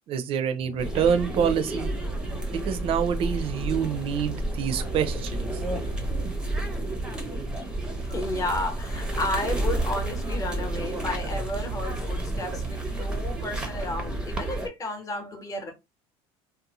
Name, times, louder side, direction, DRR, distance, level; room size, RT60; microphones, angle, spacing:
voice 1, 0.1-1.9 2.7-5.6, right 7 dB, 50° right, 0.5 m, -26 dB
sound 1, 0.6-6.3, left 4 dB, 60° left, 0.5 m, -44 dB
sound 2, 0.8-14.7, right 2 dB, 5° right, 0.6 m, -30 dB
voice 2, 8.0-15.7, left 2 dB, 25° left, 0.9 m, -32 dB
2.6 x 2.1 x 2.9 m
supercardioid pair, 120°, 12 cm